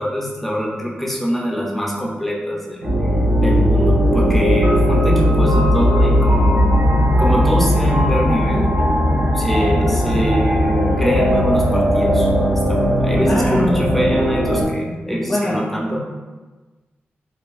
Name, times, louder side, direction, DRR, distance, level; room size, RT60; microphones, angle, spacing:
voice 1, 0.0-2.9 3.4-6.6 7.2-8.7 9.2-16.0, equal, 5° left, -3 dB, 0.8 m, -23 dB
sound 1, 2.8-14.6, equal, 70° right, 0.7 m, -17 dB
voice 2, 13.3-13.7 15.3-15.7, left 1 dB, 30° left, -4 dB, 0.5 m, -22 dB
3.8 x 2.2 x 2.5 m, 1.2 s
cardioid pair, 45°, 4 cm